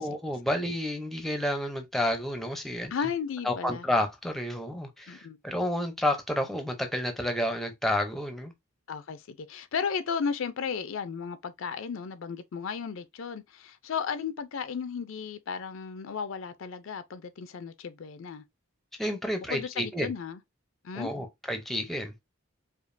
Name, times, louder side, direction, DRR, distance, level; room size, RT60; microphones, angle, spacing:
voice 1, 0.0-2.9 3.4-8.5 19.0-20.1 20.9-22.1, left 1 dB, ahead, 0.5 m, -30 dB
voice 2, 2.9-3.9 5.1-5.4 8.9-18.4 19.5-20.4 20.8-21.1, left 6 dB, 65° left, 0.4 m, -34 dB
5.0 x 2.4 x 2.5 m
head